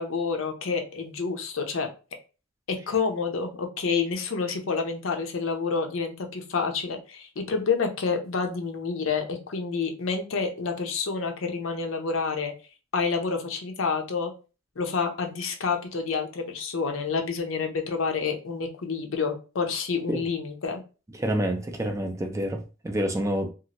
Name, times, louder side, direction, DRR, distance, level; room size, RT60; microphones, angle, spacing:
voice 1, 0.0-1.9 2.7-12.5 12.9-14.3 14.8-20.8, left 5 dB, 75° left, 0.6 m, -28 dB
voice 2, 21.2-23.5, right 1 dB, 15° right, 0.4 m, -28 dB
2.7 x 2.5 x 2.9 m
head